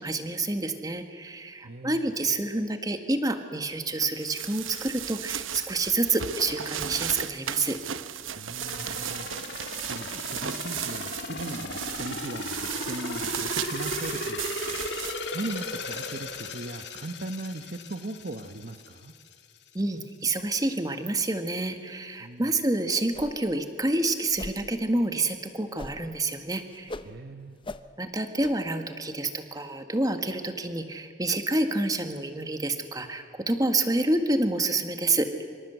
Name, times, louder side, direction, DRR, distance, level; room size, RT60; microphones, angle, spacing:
voice 1, 0.0-7.8 19.7-26.9 28.0-35.5, right 2 dB, 20° right, 7 dB, 1.7 m, -28 dB
voice 2, 1.6-2.1 8.4-14.4 14.6-14.9 15.3-19.1 22.2-22.6 27.0-27.6, right 2 dB, 50° right, 8 dB, 1.0 m, -39 dB
sound 1, 4.0-16.5, right 9 dB, 90° right, 1.0 m, -36 dB
sound 2, 8.6-19.3 19.7-19.8, left 3 dB, 60° left, 2.2 m, -36 dB
sound 3, 23.1-23.5 23.8-23.9 24.3-24.6 25.8-26.2 26.4-27.1 27.6-27.9 28.3-28.6, left 2 dB, 25° left, 0.8 m, -40 dB
26.0 x 25.5 x 8.2 m, 2.3 s
head